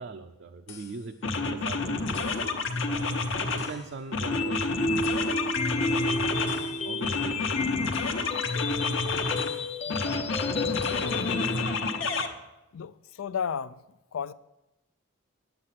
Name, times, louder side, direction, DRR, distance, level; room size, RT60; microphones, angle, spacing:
voice 1, 0.0-2.3 2.9-4.8 5.6-7.4, right 3 dB, 60° right, 0.5 m, -42 dB
sound 1, 0.7-0.8 1.2-3.8 4.1-6.7 7.0-9.5 9.9-12.3, left 3 dB, 65° left, 1.0 m, -29 dB
sound 2, 4.3-12.3, left 3 dB, 30° left, 0.4 m, -31 dB
voice 2, 9.8-10.3 12.7-13.8 14.1-14.3, left 7 dB, 90° left, 0.4 m, -34 dB
9.8 x 7.9 x 5.8 m
head